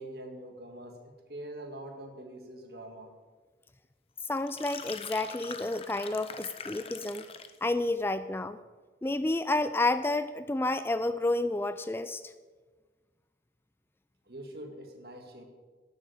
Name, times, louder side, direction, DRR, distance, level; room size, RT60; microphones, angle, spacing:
voice 1, 0.0-3.1 14.2-15.4, right 1 dB, 60° right, 4 dB, 2.0 m, -44 dB
voice 2, 4.3-7.3 7.6-8.6 9.0-12.2, left 2 dB, 15° left, 12 dB, 0.3 m, -30 dB
sound 1, 4.4-7.6, left 6 dB, 30° left, 0.7 m, -43 dB
12.0 x 7.5 x 8.4 m, 1.4 s
head